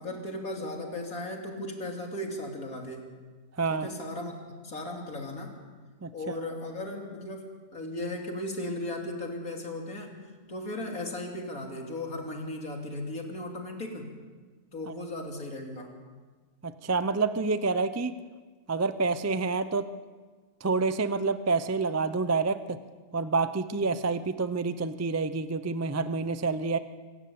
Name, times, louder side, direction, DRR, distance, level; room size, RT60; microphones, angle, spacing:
voice 1, 0.0-3.1 3.7-5.6 6.1-10.1 10.5-14.1 14.7-15.9, left 1 dB, 65° left, 1 dB, 3.5 m, -36 dB
voice 2, 16.6-18.1 18.7-19.9 20.6-22.8 23.1-26.8, right 4 dB, 20° right, 12 dB, 0.4 m, -28 dB
26.0 x 13.5 x 8.7 m, 1.4 s
omnidirectional pair, 1.6 m